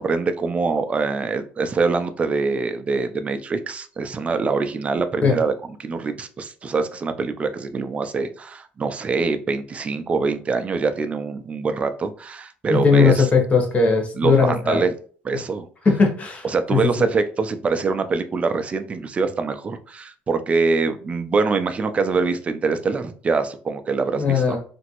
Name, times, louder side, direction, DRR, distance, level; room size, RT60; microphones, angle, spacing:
voice 1, 0.0-5.5 5.8-13.3 14.2-14.9 15.2-15.7 16.4-24.6, right 4 dB, 25° right, 9 dB, 0.4 m, -24 dB
voice 2, 12.7-14.8 15.8-16.5 16.7-17.1 24.2-24.6, left 5 dB, 30° left, 1 dB, 0.9 m, -18 dB
2.9 x 2.6 x 2.9 m, 0.42 s
cardioid pair, 115°, 5 cm